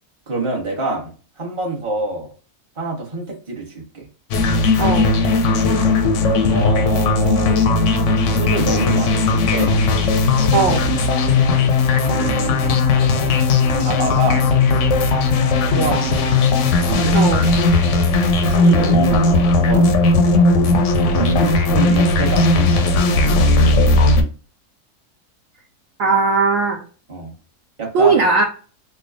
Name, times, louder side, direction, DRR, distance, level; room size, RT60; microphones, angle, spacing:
voice 1, 0.3-2.3 2.8-4.1 6.5-7.7 8.3-9.8 12.0-12.8 13.7-14.5 15.7-16.2 16.8-17.6 18.4-20.0 21.1-23.0 27.1-27.3 27.8-28.2, right 2 dB, 25° right, -1 dB, 0.9 m, -26 dB
sound 1, 4.3-24.2, left 3 dB, 65° left, 0.8 m, -16 dB
voice 2, 10.5-10.8 17.1-17.4 26.0-26.8 27.9-28.4, right 4 dB, 65° right, 1 dB, 0.9 m, -17 dB
3.3 x 2.2 x 3.7 m, 0.37 s
omnidirectional pair, 1.7 m